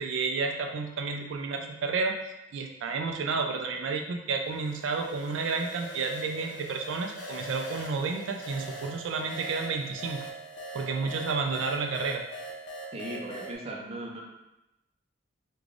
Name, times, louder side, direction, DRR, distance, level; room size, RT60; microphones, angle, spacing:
voice 1, 0.0-10.2 10.7-12.2, right 4 dB, 90° right, 3 dB, 0.4 m, -31 dB
sound 1, 4.5-13.6, right 1 dB, 75° left, 0.7 m, -42 dB
voice 2, 12.9-14.2, right 1 dB, 30° right, -2 dB, 0.5 m, -38 dB
3.2 x 2.3 x 3.7 m, 0.94 s
head